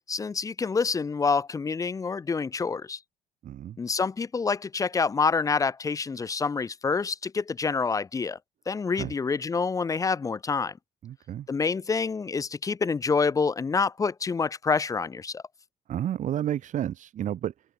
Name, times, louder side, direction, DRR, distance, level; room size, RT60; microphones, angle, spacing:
voice 1, 0.1-3.0 3.8-8.4 8.7-10.7 11.5-15.4, left 5 dB, 20° left, 0.4 m, -27 dB
voice 2, 3.4-3.8 9.0-9.1 11.0-11.5 15.9-17.5, right 11 dB, 55° right, 0.7 m, -31 dB
open air
cardioid pair, 85°, 15 cm